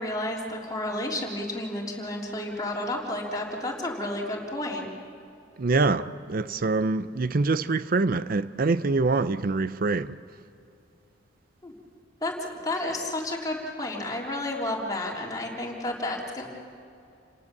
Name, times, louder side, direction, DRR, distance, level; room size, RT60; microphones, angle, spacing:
voice 1, 0.0-4.9 11.6-11.7 12.2-16.5, left 1 dB, 20° left, 3.6 m, -31 dB
voice 2, 5.6-10.2, right 3 dB, 50° right, 0.6 m, -25 dB
29.0 x 18.5 x 7.3 m
head